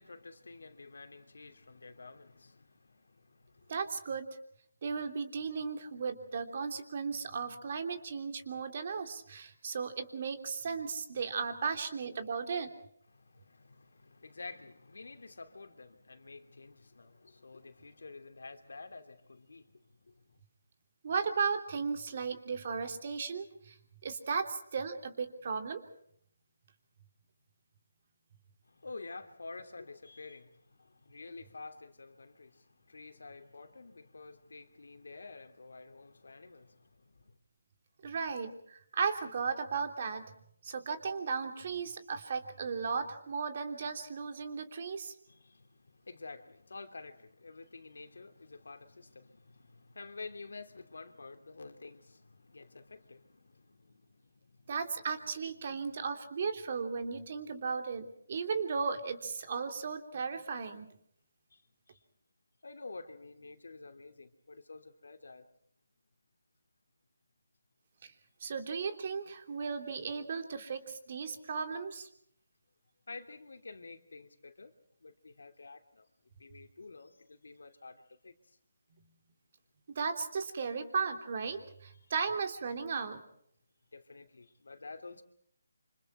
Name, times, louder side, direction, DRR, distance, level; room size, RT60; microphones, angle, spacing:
voice 1, 0.0-3.7 13.1-20.2 28.6-37.4 45.3-54.7 61.5-61.6 61.9-62.0 62.6-65.5 73.1-74.7 75.0-76.1 76.4-78.3 83.9-85.2, left 3 dB, 80° left, 2.8 m, -50 dB
voice 2, 3.7-4.3 4.8-12.7 21.0-23.8 24.0-25.8 38.0-40.2 40.6-45.1 54.7-60.9 68.0-68.1 68.4-72.1 79.9-83.2, right 5 dB, 45° right, 3.2 m, -36 dB
28.0 x 26.5 x 4.4 m
hypercardioid pair, 165°, 0 cm